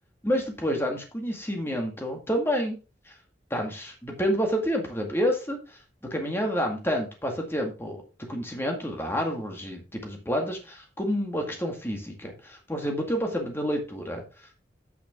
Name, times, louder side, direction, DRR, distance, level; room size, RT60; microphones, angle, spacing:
voice 1, 0.2-2.8 3.5-5.6 6.1-8.0 8.3-14.2, equal, 15° left, 2 dB, 1.9 m, -29 dB
8.4 x 6.3 x 3.6 m, 0.31 s
head